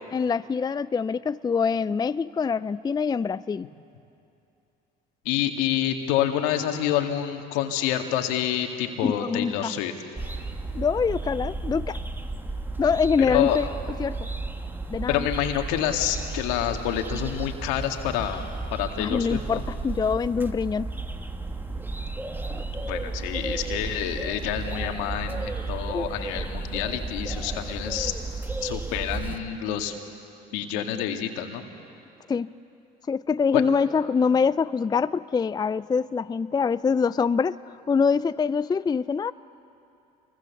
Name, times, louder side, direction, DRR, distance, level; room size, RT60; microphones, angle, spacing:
voice 1, 0.1-3.7 9.2-9.7 10.7-12.0 12.8-13.7 14.0-14.3 14.9-15.3 19.0-20.9 25.9-26.5 32.3-32.5 33.1-37.6 37.9-39.3, left 5 dB, 20° left, 16 dB, 0.4 m, -24 dB
voice 2, 5.3-9.9 13.2-13.6 15.1-18.4 18.7-19.6 22.8-28.1 28.6-29.9 30.5-31.7 33.5-33.6, left 11 dB, 80° left, 5 dB, 2.0 m, -27 dB
sound 1, 10.2-29.4, right 3 dB, 10° right, 1.7 m, -33 dB
26.5 x 22.0 x 7.1 m, 2.7 s
hypercardioid pair, 65°, 20 cm